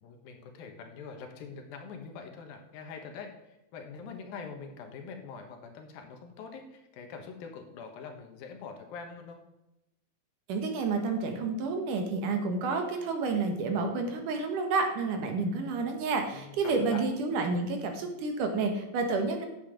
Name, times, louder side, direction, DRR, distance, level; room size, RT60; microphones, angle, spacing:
voice 1, 0.0-9.4 16.3-17.1, left 5 dB, 75° left, 4 dB, 3.0 m, -44 dB
voice 2, 10.5-19.5, right 3 dB, 65° right, 4 dB, 2.7 m, -30 dB
10.5 x 7.7 x 5.1 m, 0.92 s
omnidirectional pair, 4.3 m